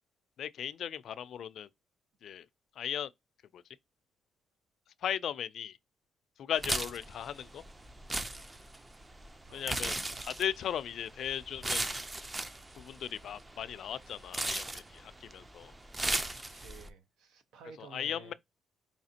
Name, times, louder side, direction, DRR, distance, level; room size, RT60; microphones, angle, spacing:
voice 1, 0.4-1.7 2.2-2.5 2.8-3.1 3.5-3.6 5.0-5.8 6.4-7.6 9.5-10.0 10.2-11.9 12.8-15.7 17.8-18.3, left 9 dB, 65° left, 0.4 m, -37 dB
sound 1, 6.6-16.9, right 2 dB, 15° right, 0.5 m, -37 dB
voice 2, 9.4-9.8 16.3-18.3, right 5 dB, 85° right, 0.9 m, -53 dB
4.9 x 2.8 x 2.8 m
cardioid pair, 90°, 0 cm